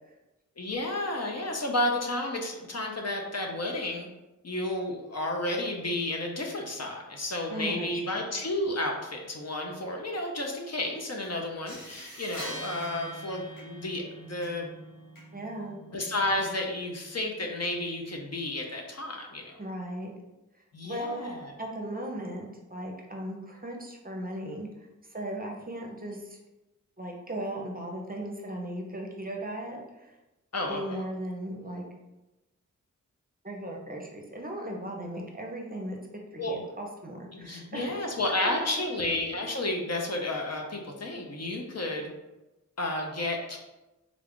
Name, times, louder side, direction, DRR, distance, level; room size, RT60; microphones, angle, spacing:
voice 1, 0.6-4.1 4.4-14.7 15.9-19.6 20.7-21.5 30.5-31.0 36.4-36.6 37.3-42.1 42.8-43.6, left 1 dB, 55° left, 1 dB, 0.7 m, -32 dB
voice 2, 7.5-8.3 15.3-15.8 19.6-20.1 20.8-21.3 21.6-26.4 27.0-30.2 30.7-31.8 33.4-36.0 36.3-38.0, right 1 dB, 30° right, 0 dB, 0.6 m, -37 dB
sound 1, 11.2-11.3 11.6-16.6, equal, 85° left, 1.3 m, -44 dB
3.7 x 2.3 x 3.6 m, 1.0 s
wide cardioid pair, 55°, 32 cm